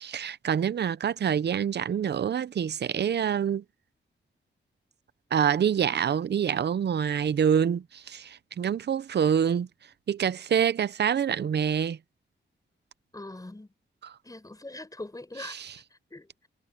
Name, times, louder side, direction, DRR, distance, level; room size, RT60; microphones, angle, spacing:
voice 1, 0.0-3.6 5.3-9.7 10.1-12.0 14.0-14.1, right 8 dB, 55° right, 0.6 m, -26 dB
voice 2, 13.1-13.7 14.2-16.5, left 2 dB, 15° left, 6.1 m, -42 dB
wide cardioid pair, 140°, 20 cm